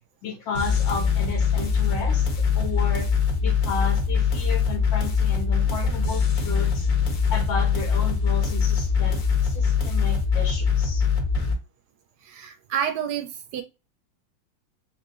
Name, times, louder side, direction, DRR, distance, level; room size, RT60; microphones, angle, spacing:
voice 1, 0.2-3.1 3.4-6.9 7.3-11.1, left 4 dB, 80° left, 1.5 m, -33 dB
sound 1, 0.5-11.5, left 6 dB, 55° left, 1.2 m, -23 dB
voice 2, 12.2-13.6, right 8 dB, 75° right, 1.0 m, -29 dB
3.9 x 2.6 x 3.7 m
omnidirectional pair, 2.1 m